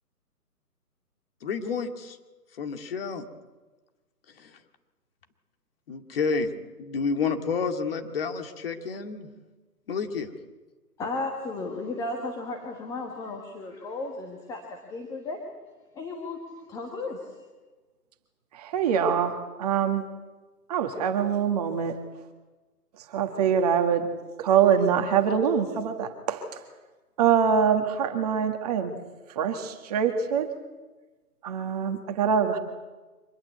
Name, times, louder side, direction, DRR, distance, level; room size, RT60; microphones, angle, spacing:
voice 1, 1.4-2.2 2.6-3.2 4.4-4.5 5.9-6.5 6.8-9.3 9.9-10.3, left 5 dB, 35° left, 6 dB, 2.5 m, -29 dB
voice 2, 11.0-15.4 15.9-16.4 16.7-17.3, left 3 dB, 5° left, 2 dB, 1.4 m, -34 dB
voice 3, 18.5-20.0 20.7-22.0 23.0-24.1 24.4-26.6 27.2-29.0 29.3-30.5 31.4-32.6, right 7 dB, 25° right, 6 dB, 1.8 m, -24 dB
25.0 x 20.0 x 8.3 m, 1.2 s
figure-of-eight pair, 150°, 49 cm